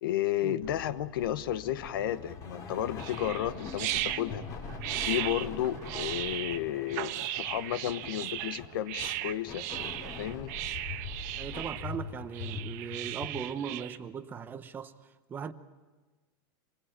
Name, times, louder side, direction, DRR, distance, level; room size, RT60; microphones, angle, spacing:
voice 1, 0.0-4.5 5.0-9.6 10.2-10.5, left 12 dB, 80° left, 1.0 m, -32 dB
sound 1, 0.6-13.3, left 5 dB, 30° left, 2.9 m, -43 dB
sound 2, 3.0-14.0, right 15 dB, 50° right, 1.1 m, -37 dB
voice 2, 11.4-15.5, right 7 dB, 15° right, 0.9 m, -39 dB
26.5 x 21.5 x 8.9 m
supercardioid pair, 160°, 12 cm